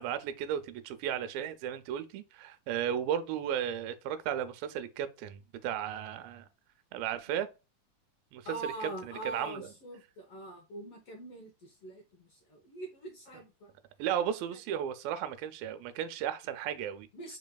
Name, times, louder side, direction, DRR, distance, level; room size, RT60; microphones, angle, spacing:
voice 1, 0.0-6.5 6.9-7.5 8.3-8.9 9.3-9.7 14.0-17.1, right 9 dB, 85° right, 2.4 m, -34 dB
voice 2, 8.4-13.7 14.5-14.8 17.1-17.4, right 2 dB, 75° left, 1.3 m, -43 dB
5.2 x 4.0 x 2.3 m
omnidirectional pair, 4.1 m